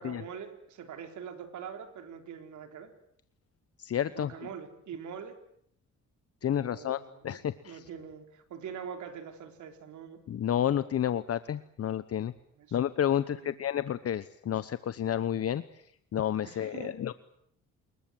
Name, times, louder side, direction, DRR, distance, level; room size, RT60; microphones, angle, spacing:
voice 1, 0.0-2.9 4.1-5.4 6.4-10.2 12.6-12.8 13.3-13.6 16.4-17.0, right 7 dB, 75° right, 6 dB, 4.0 m, -44 dB
voice 2, 3.8-4.3 6.4-7.8 10.3-12.3 12.7-15.6 16.1-17.1, left 10 dB, 50° left, 13 dB, 1.0 m, -30 dB
28.5 x 21.5 x 7.8 m, 0.68 s
cardioid pair, 90°, 30 cm